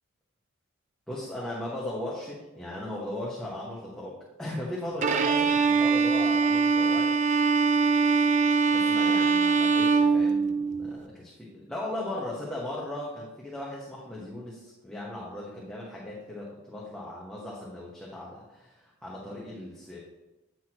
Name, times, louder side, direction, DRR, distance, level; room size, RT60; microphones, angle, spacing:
voice 1, 1.1-7.1 8.4-20.0, left 1 dB, 5° left, -6 dB, 1.1 m, -37 dB
Bowed string instrument, 5.0-10.9, right 5 dB, 35° right, 0.4 m, -23 dB
9.3 x 6.1 x 2.9 m, 1.0 s
head